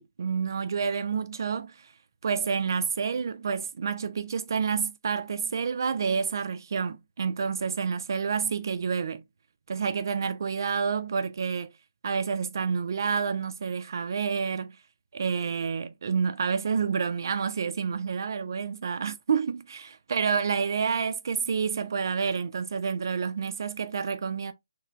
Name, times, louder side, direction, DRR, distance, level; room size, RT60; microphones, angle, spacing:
voice 1, 0.0-1.9 2.2-9.2 9.7-11.7 12.0-14.8 15.1-24.5, right 6 dB, 55° right, 0.4 m, -29 dB
3.2 x 2.9 x 2.3 m
figure-of-eight pair, 155°, 2 cm